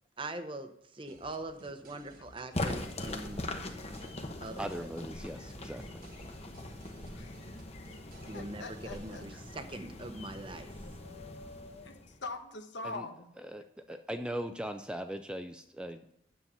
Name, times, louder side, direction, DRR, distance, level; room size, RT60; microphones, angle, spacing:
voice 1, 0.2-3.4 4.4-4.7 8.3-10.7, right 2 dB, 25° right, 9 dB, 0.8 m, -42 dB
sound 1, 1.1-9.4, right 2 dB, 45° right, 1.3 m, -56 dB
sound 2, 2.5-12.3, left 1 dB, 35° left, 1.0 m, -41 dB
voice 2, 4.6-6.0 12.8-13.1 13.4-16.1, equal, 5° right, 7 dB, 0.4 m, -39 dB
voice 3, 7.1-7.5 8.3-9.4 10.7-13.3 13.9-14.0, left 3 dB, 70° left, 7 dB, 1.1 m, -44 dB
9.8 x 7.5 x 5.5 m, 0.74 s
head